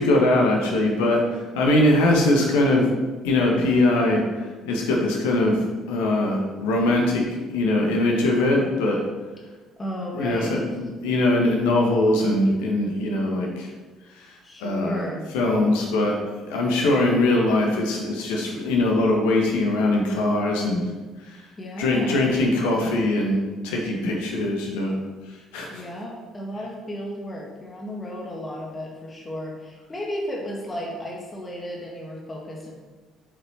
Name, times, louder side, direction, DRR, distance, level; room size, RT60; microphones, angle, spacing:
voice 1, 0.0-2.9 3.2-7.2 7.5-9.0 10.1-13.7 14.2-14.3 14.6-15.1 15.3-16.2 16.4-20.9 21.2-21.4 21.8-25.0 25.5-25.8, left 2 dB, 65° left, 0 dB, 1.8 m, -21 dB
voice 2, 9.8-10.6 14.4-15.3 21.6-22.4 25.7-32.7, equal, 20° left, -1 dB, 2.0 m, -34 dB
7.9 x 7.8 x 4.4 m, 1.3 s
figure-of-eight pair, 50°, 0 cm